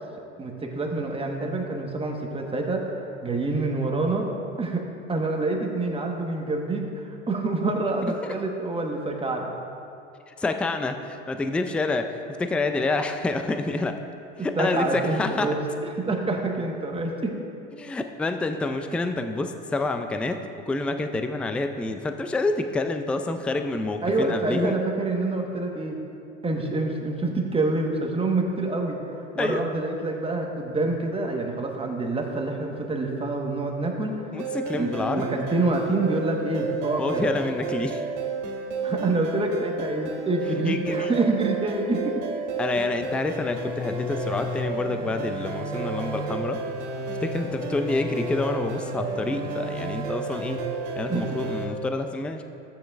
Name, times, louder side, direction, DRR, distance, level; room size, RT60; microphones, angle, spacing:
voice 1, 0.4-4.3 4.6-9.5 14.6-15.6 16.0-17.3 24.0-26.0 26.4-29.0 29.3-34.3 34.7-37.3 38.8-42.2 51.1-51.3, right 2 dB, 15° right, 1 dB, 1.3 m, -27 dB
voice 2, 10.3-14.0 14.4-15.5 17.7-24.8 29.4-29.6 34.3-35.3 37.0-38.0 40.6-41.1 42.6-46.6 47.2-50.6 51.0-52.4, left 2 dB, 5° left, 7 dB, 0.3 m, -28 dB
sound 1, 34.4-51.7, right 2 dB, 70° right, 2.1 m, -32 dB
14.0 x 8.8 x 2.5 m, 2.6 s
hypercardioid pair, 85°, 37 cm